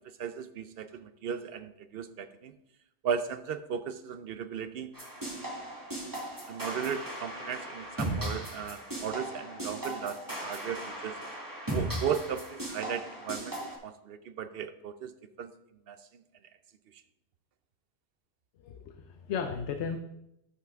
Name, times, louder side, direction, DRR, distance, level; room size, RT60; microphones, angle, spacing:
voice 1, 0.0-2.5 3.0-5.0 6.5-11.1 11.7-13.5 13.8-15.5 15.9-16.2 16.9-17.0, right 7 dB, 65° right, 11 dB, 0.7 m, -36 dB
sound 1, 4.9-13.8, right 1 dB, 15° right, 2.1 m, -37 dB
voice 2, 18.6-20.0, left 6 dB, 85° left, 7 dB, 0.9 m, -35 dB
13.0 x 5.7 x 3.5 m, 0.83 s
omnidirectional pair, 1.1 m